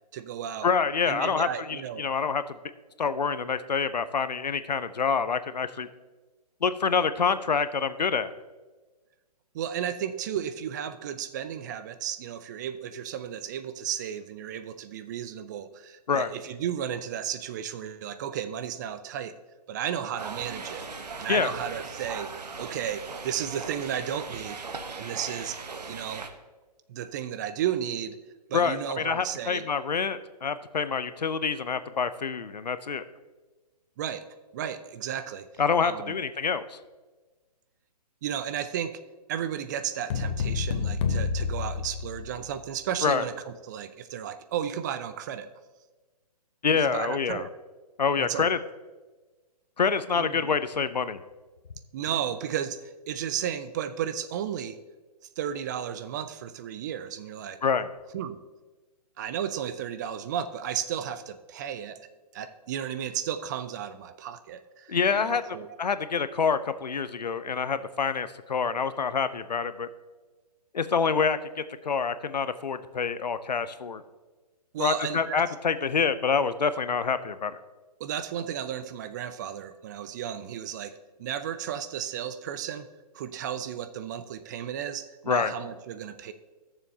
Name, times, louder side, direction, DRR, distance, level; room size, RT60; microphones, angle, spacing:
voice 1, 0.1-0.7 1.1-2.1 9.5-19.3 19.7-20.8 21.2-22.3 22.6-24.6 25.0-25.6 25.9-26.2 26.9-28.2 28.5-29.7 34.0-34.3 34.5-35.5 35.8-36.2 38.2-39.0 39.3-45.5 46.7-47.5 48.2-48.5 50.1-50.5 51.9-54.8 55.4-57.6 58.1-58.4 59.2-62.1 62.3-65.8 74.7-75.4 78.0-82.9 83.1-86.3, right 9 dB, 25° right, 11 dB, 0.4 m, -33 dB
voice 2, 0.6-2.4 3.0-5.9 6.6-8.3 16.1-16.3 21.3-21.5 28.5-33.0 35.6-36.8 43.0-43.2 46.6-47.5 48.0-48.6 49.8-51.2 57.6-57.9 64.9-65.4 65.8-69.9 70.7-71.4 71.8-74.0 74.8-77.6 85.3-85.5, left 5 dB, 85° left, 13 dB, 0.7 m, -26 dB
sound 1, 20.2-26.3, right 4 dB, 75° right, 1.0 m, -39 dB
sound 2, 40.1-42.6, left 5 dB, 45° left, 0.9 m, -29 dB
15.5 x 7.0 x 2.8 m, 1.2 s
figure-of-eight pair, 135°, 21 cm